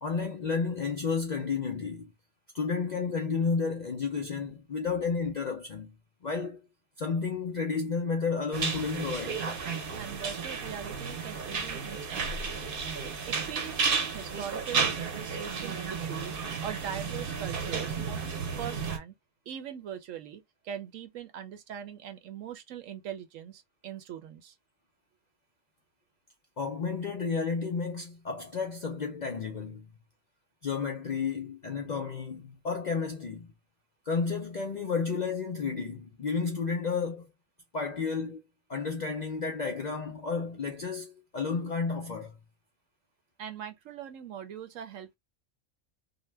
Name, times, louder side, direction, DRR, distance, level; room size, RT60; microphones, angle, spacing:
voice 1, 0.0-2.1 2.5-6.0 6.2-6.6 7.0-9.6 26.6-29.9 30.6-33.5 34.1-37.3 37.7-38.4 38.7-42.4, left 5 dB, 60° left, 0.4 m, -32 dB
sound 1, 8.5-19.0, right 5 dB, 50° right, 0.8 m, -33 dB
voice 2, 10.0-12.6 13.2-18.0 18.5-19.1 19.5-24.5 43.4-45.1, right 9 dB, 85° right, 1.1 m, -41 dB
2.7 x 2.1 x 3.2 m
omnidirectional pair, 1.3 m